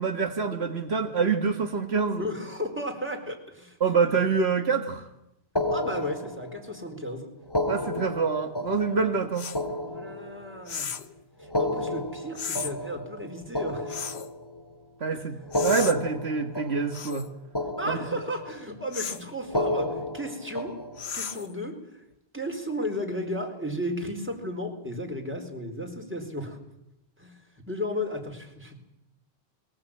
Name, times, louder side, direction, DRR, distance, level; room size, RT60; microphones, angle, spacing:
voice 1, 0.0-2.2 3.8-5.1 7.7-9.5 15.0-17.3 17.9-18.0, right 5 dB, 80° right, 7 dB, 1.8 m, -26 dB
voice 2, 2.2-3.8 5.7-7.3 9.9-10.9 11.4-14.0 15.1-15.3 17.8-20.8 21.1-22.0 22.3-26.6 27.2-27.4 27.7-28.8, equal, 10° right, 2 dB, 4.3 m, -34 dB
sound 1, 5.6-6.8 7.4-10.7 11.4-14.7 15.4-17.3 17.5-18.6 19.4-21.2, left 1 dB, 25° left, 2.5 m, -32 dB
sound 2, 9.4-9.6 10.7-11.1 12.4-12.7 13.9-14.3 15.5-16.0 16.9-17.3 18.9-19.3 21.0-21.5, left 7 dB, 85° left, 1.4 m, -35 dB
22.0 x 18.5 x 8.9 m, 0.86 s
omnidirectional pair, 1.1 m